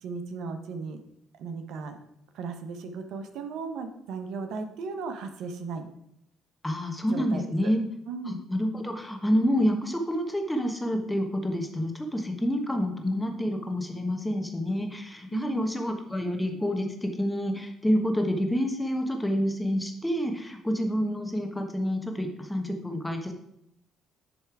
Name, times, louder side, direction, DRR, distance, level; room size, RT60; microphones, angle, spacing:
voice 1, 0.0-1.0 1.3-2.0 2.3-5.9 7.1-7.7 8.1-8.4 15.3-15.7, right 4 dB, 75° right, 7 dB, 0.9 m, -36 dB
voice 2, 6.6-7.8 8.2-23.3, equal, 5° left, 4 dB, 1.2 m, -28 dB
10.0 x 3.4 x 4.7 m, 0.76 s
cardioid pair, 85°, 0 cm